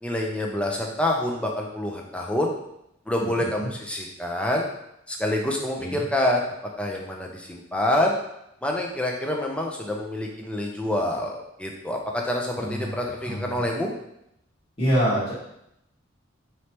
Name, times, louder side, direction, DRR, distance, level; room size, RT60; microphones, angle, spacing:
voice 1, 0.0-2.5 3.1-4.7 5.1-8.2 8.6-13.9, left 1 dB, 5° left, 0 dB, 0.5 m, -27 dB
voice 2, 3.2-3.7 5.8-6.0 12.6-12.9 13.2-13.6 14.8-15.3, equal, 30° left, -10 dB, 1.6 m, -26 dB
4.8 x 3.2 x 2.9 m, 0.80 s
head